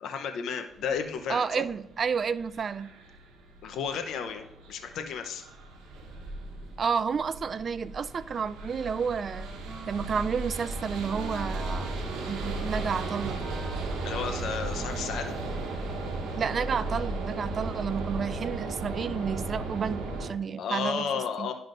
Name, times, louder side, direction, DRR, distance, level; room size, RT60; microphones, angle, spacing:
voice 1, 0.0-1.6 3.6-5.4 14.0-15.3 20.6-21.5, left 6 dB, 75° left, 6 dB, 0.7 m, -33 dB
sound 1, 0.7-20.3, right 2 dB, 90° right, 1.0 m, -36 dB
voice 2, 1.3-2.9 6.8-9.5 9.9-11.9 12.3-13.4 16.4-21.1 21.4-21.5, right 6 dB, 45° right, 15 dB, 0.3 m, -31 dB
Wind instrument woodwind instrument, 9.2-16.3, right 2 dB, 30° right, 1.2 m, -45 dB
10.5 x 5.6 x 2.6 m, 0.83 s
cardioid pair, 90°, 0 cm